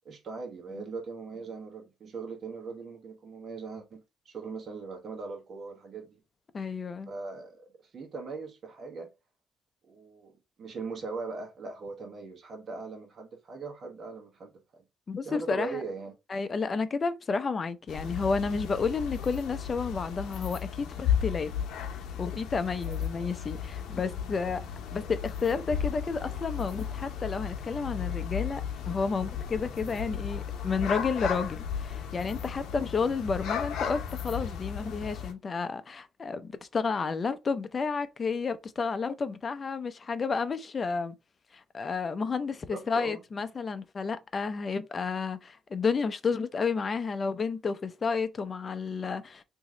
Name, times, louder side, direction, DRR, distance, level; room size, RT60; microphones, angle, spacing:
voice 1, 0.0-6.2 7.1-9.1 9.9-14.8 15.2-16.1 22.9-23.1 42.7-43.2, right 4 dB, 50° right, 1.2 m, -40 dB
voice 2, 6.5-7.1 15.1-15.8 16.3-21.5 22.2-24.6 24.9-41.1 41.5-49.4, left 5 dB, 40° left, 0.5 m, -31 dB
sound 1, 17.9-35.3, left 8 dB, 85° left, 0.7 m, -35 dB
3.0 x 2.7 x 3.7 m
cardioid pair, 90°, 0 cm